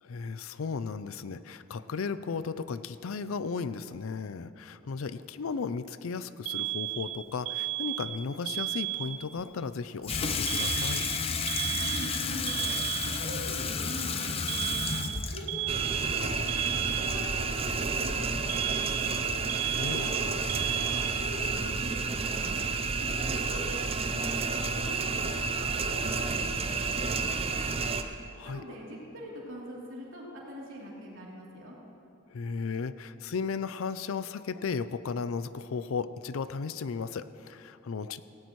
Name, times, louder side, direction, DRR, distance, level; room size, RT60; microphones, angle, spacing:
voice 1, 0.0-11.0 19.7-20.1 28.4-28.6 32.3-38.2, left 5 dB, 75° left, 14 dB, 0.5 m, -35 dB
Alarm, 6.5-9.4 10.5-13.4 14.5-17.5 18.5-21.5, right 16 dB, 85° right, 0.5 m, -34 dB
Water tap faucet / Sink (filling or washing), 10.0-17.1, left 5 dB, 30° left, 0.6 m, -32 dB
voice 2, 11.7-12.7 13.0-15.0 15.3-19.2 19.9-22.6 23.0-27.8 28.4-31.8, equal, 65° right, -4 dB, 3.2 m, -43 dB
sound 1, 15.7-28.0, right 4 dB, 30° right, 0.6 m, -30 dB
17.5 x 16.5 x 3.1 m, 2.7 s
head